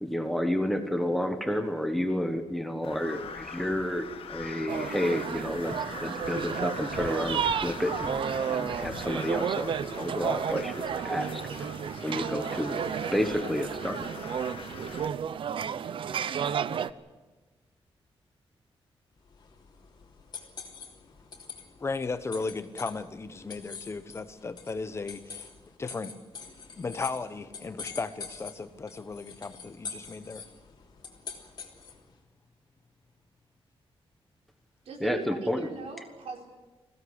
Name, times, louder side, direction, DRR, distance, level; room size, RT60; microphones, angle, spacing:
voice 1, 0.0-11.4 12.0-12.8 13.1-14.1 35.0-35.7, equal, ahead, 7 dB, 1.3 m, -30 dB
Crow, 2.8-15.1, left 7 dB, 70° left, 1.6 m, -42 dB
sound 1, 4.7-16.9, right 8 dB, 60° right, 0.7 m, -32 dB
sound 2, 19.3-32.1, left 5 dB, 45° left, 3.2 m, -45 dB
voice 2, 21.8-25.5 25.8-26.1 26.8-30.4, left 4 dB, 25° left, 11 dB, 1.0 m, -35 dB
voice 3, 34.8-36.5, right 4 dB, 85° right, 2 dB, 4.6 m, -39 dB
21.5 x 16.5 x 9.7 m, 1.2 s
wide cardioid pair, 165°, 10 cm